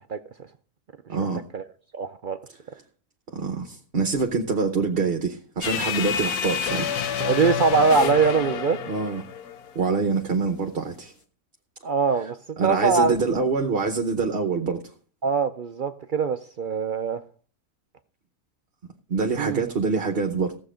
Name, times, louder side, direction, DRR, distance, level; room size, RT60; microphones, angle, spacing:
voice 1, 1.1-1.4 3.3-6.9 8.9-9.2 9.7-11.1 12.6-14.9 19.1-20.6, right 4 dB, 45° right, 1.0 m, -25 dB
voice 2, 1.9-2.4 7.2-8.8 11.8-12.4 12.6-13.2 15.2-17.2 19.4-19.6, right 5 dB, 65° right, 0.5 m, -22 dB
sound 1, 5.6-10.0, left 8 dB, 80° left, 1.4 m, -28 dB
15.5 x 7.6 x 5.0 m
omnidirectional pair, 1.6 m